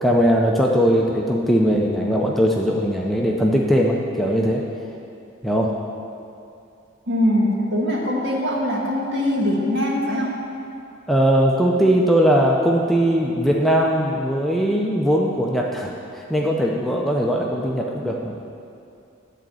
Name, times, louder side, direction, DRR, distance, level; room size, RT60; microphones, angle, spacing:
voice 1, 0.0-4.6 5.4-5.7 11.1-18.3, equal, ahead, -1 dB, 0.4 m, -20 dB
voice 2, 7.1-10.3, left 1 dB, 60° right, -4 dB, 1.6 m, -22 dB
10.0 x 4.1 x 7.6 m, 2.6 s
head